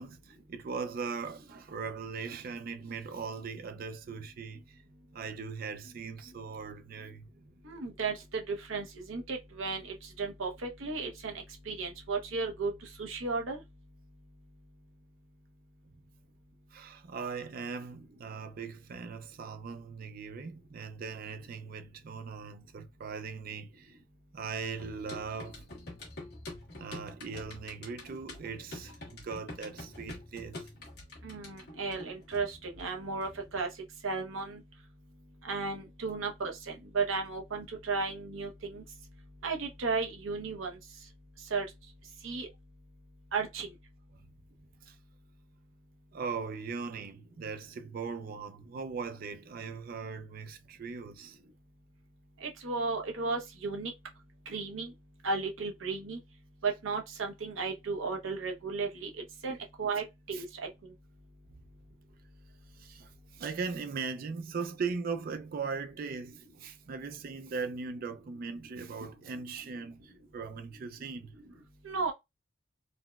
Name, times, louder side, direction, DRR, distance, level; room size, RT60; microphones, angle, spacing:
voice 1, 0.0-4.8 5.1-7.3 16.7-24.0 24.3-25.7 26.8-30.7 44.8-45.0 46.1-51.4 59.5-59.6 60.3-60.4 62.7-71.3, right 5 dB, 45° right, 0.3 m, -39 dB
voice 2, 7.6-12.7 13.0-13.6 31.2-33.7 34.0-34.6 35.4-38.8 39.4-40.8 41.5-41.6 42.2-42.5 43.3-43.7 52.4-53.9 54.5-54.9 55.2-56.2 56.6-59.1 59.4-60.7 71.8-72.1, right 4 dB, 75° right, 0.7 m, -34 dB
sound 1, 24.8-33.6, left 2 dB, 55° left, 1.4 m, -47 dB
4.0 x 2.1 x 2.2 m
head